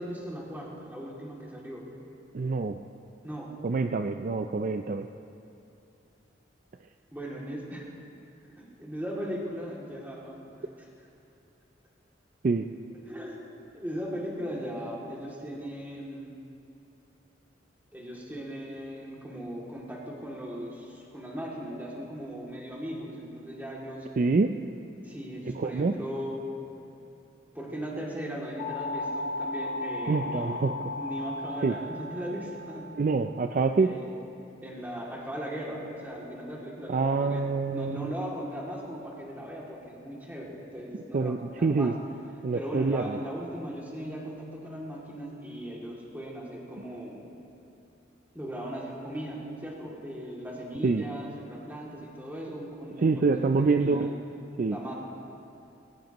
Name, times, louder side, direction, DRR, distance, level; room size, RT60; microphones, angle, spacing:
voice 1, 0.0-1.9 3.2-3.6 7.1-7.9 8.5-11.1 13.0-13.4 13.7-16.3 17.9-24.1 25.0-26.5 27.5-33.0 33.8-34.2 34.6-41.9 42.5-47.3 48.3-54.2 54.7-55.0, equal, 10° right, -4 dB, 2.5 m, -38 dB
voice 2, 2.3-2.8 3.6-5.1 12.4-12.6 24.2-24.5 25.6-25.9 30.1-30.7 31.6-31.7 33.0-33.9 36.9-38.1 41.1-41.9 42.4-43.2 50.8-51.0 53.0-54.1 54.6-54.8, right 4 dB, 45° right, 6 dB, 0.4 m, -26 dB
sound 1, 28.6-34.0, left 2 dB, 60° left, 2.6 m, -36 dB
20.0 x 18.0 x 3.0 m, 2.7 s
head